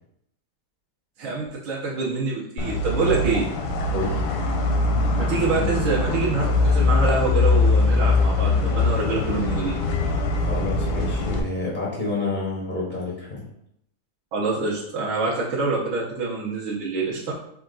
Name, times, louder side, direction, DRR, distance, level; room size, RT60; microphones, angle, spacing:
voice 1, 1.2-3.5 5.2-9.7 14.3-17.2, right 3 dB, 90° right, -5 dB, 1.7 m, -26 dB
sound 1, 2.6-11.4, left 3 dB, 80° left, 1.5 m, -22 dB
voice 2, 3.9-4.2 10.3-13.4, left 2 dB, 65° left, -4 dB, 0.4 m, -29 dB
5.7 x 2.3 x 3.8 m, 0.77 s
omnidirectional pair, 2.1 m